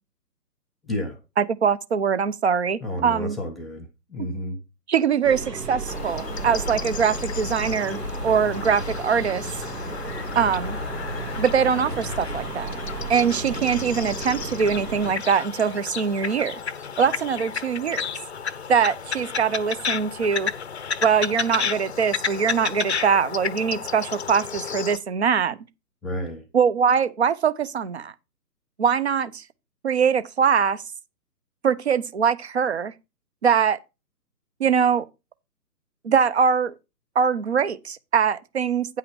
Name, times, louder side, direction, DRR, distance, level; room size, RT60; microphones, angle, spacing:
voice 1, 0.8-1.2 2.8-4.6 26.0-26.5, left 1 dB, ahead, 0.4 m, -31 dB
voice 2, 1.4-3.4 4.2-4.3 4.9-9.5 10.4-10.8 11.4-12.7 13.1-16.6 17.0-18.1 18.7-20.5 21.0-25.6 26.5-28.1 28.8-29.4 29.8-30.8 31.6-32.9 33.4-33.8 34.6-35.1 36.0-36.7 37.2-39.0, right 6 dB, 45° right, 0.7 m, -22 dB
sound 1, 5.2-15.1, right 2 dB, 75° right, 2.9 m, -33 dB
sound 2, 5.9-25.0, left 6 dB, 45° left, 0.6 m, -32 dB
9.4 x 5.7 x 4.9 m
figure-of-eight pair, 135°, 48 cm